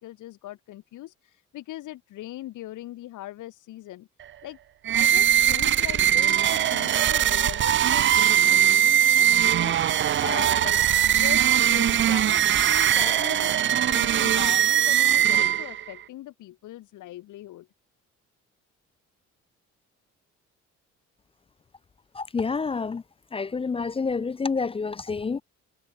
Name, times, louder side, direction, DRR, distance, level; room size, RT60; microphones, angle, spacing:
voice 1, 0.0-4.1 4.4-4.6 4.9-17.7, left 15 dB, 85° left, 2.6 m, -40 dB
sound 1, 4.9-15.9, right 10 dB, 40° right, 0.5 m, -21 dB
voice 2, 22.2-23.0 23.3-25.4, left 4 dB, 20° left, 0.4 m, -28 dB
cardioid pair, 90°, 30 cm